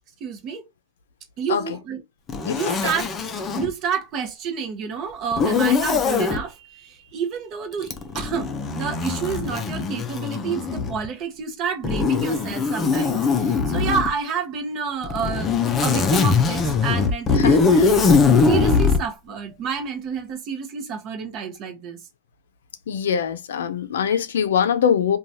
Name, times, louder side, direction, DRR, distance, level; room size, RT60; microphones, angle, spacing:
voice 1, 0.2-0.7 1.4-2.0 2.5-3.1 3.5-15.5 15.8-17.8 18.5-22.0, right 6 dB, 40° right, 0.8 m, -29 dB
Zipper (clothing), 2.3-3.7 5.3-6.4 7.8-11.1 11.8-14.1 15.0-19.0, left 4 dB, 25° left, 0.5 m, -21 dB
voice 2, 2.5-2.8 17.4-17.9 22.9-25.2, left 8 dB, 85° left, 0.5 m, -23 dB
3.0 x 2.3 x 2.6 m
hypercardioid pair, 135°, 0 cm